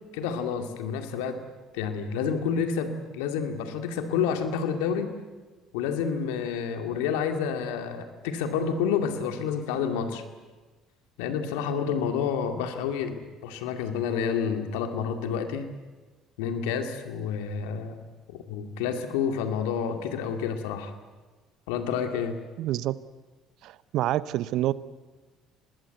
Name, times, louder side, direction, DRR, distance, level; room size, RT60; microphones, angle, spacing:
voice 1, 0.1-1.4 1.7-5.1 5.7-10.2 11.2-15.7 16.4-18.0 18.5-20.9 21.7-22.4, left 7 dB, 80° left, 6 dB, 2.2 m, -29 dB
voice 2, 22.6-22.9 23.6-24.7, right 14 dB, 65° right, 17 dB, 0.8 m, -27 dB
25.5 x 20.0 x 8.0 m, 1.3 s
hypercardioid pair, 60°, 0 cm